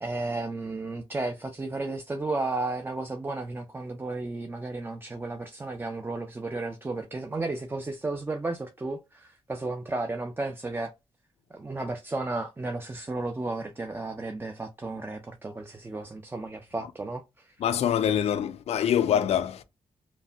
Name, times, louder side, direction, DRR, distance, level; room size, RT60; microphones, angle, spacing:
voice 1, 0.0-10.9 11.5-17.6, right 2 dB, 20° right, 0.4 m, -33 dB
voice 2, 17.6-19.6, left 9 dB, 70° left, 0.4 m, -25 dB
3.2 x 2.1 x 2.6 m
cardioid pair, 65°, 11 cm